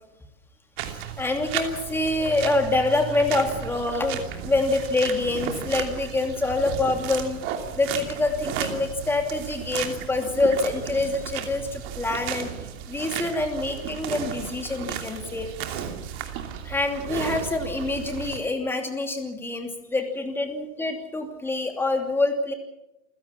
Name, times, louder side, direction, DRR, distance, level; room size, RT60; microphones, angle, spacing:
voice 1, 0.8-7.4 7.8-15.9 16.6-22.5, left 2 dB, 5° left, 4 dB, 2.7 m, -26 dB
sound 1, 0.8-18.4, right 9 dB, 30° right, 2.9 m, -34 dB
28.5 x 16.0 x 7.2 m, 0.95 s
hypercardioid pair, 145°, 39 cm